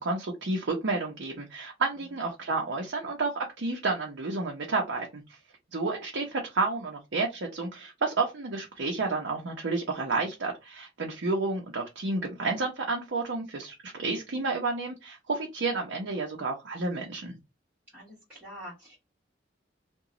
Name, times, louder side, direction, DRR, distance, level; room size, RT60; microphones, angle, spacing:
voice 1, 0.0-5.4 5.7-17.3, right 3 dB, 80° right, 0 dB, 0.7 m, -31 dB
voice 2, 17.9-19.0, equal, 10° right, -8 dB, 1.3 m, -45 dB
2.9 x 2.2 x 3.7 m, 0.23 s
head